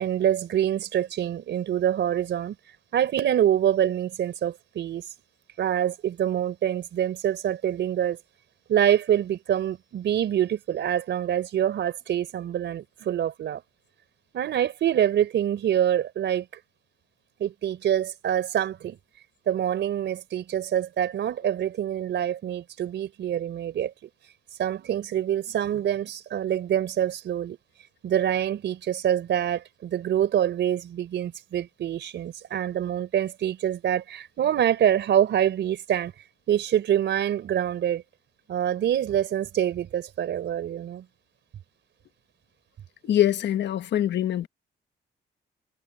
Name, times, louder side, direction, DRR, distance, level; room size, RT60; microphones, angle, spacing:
voice 1, 0.0-2.6 2.9-5.1 5.6-8.2 8.7-13.6 14.3-16.5 17.4-19.0 19.5-23.9 24.6-27.6 28.0-36.1 36.5-38.0 38.5-41.0, right 10 dB, 75° right, 4.3 m, -25 dB
voice 2, 43.1-44.5, left 12 dB, 75° left, 1.3 m, -23 dB
cardioid pair, 100°, 19 cm